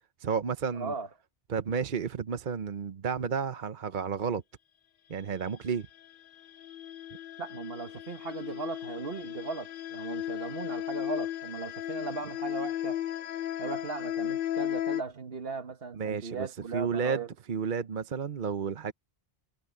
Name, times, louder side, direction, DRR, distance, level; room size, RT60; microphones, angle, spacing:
voice 1, 0.2-0.9 1.5-4.4 5.1-5.9 15.9-16.5 16.7-17.2 17.5-18.9, right 6 dB, 55° right, 0.9 m, -31 dB
voice 2, 0.7-1.1 7.4-13.0 13.6-17.3, right 4 dB, 70° right, 1.6 m, -38 dB
sound 1, 6.0-15.0, left 12 dB, 65° left, 0.7 m, -35 dB
omnidirectional pair, 1.0 m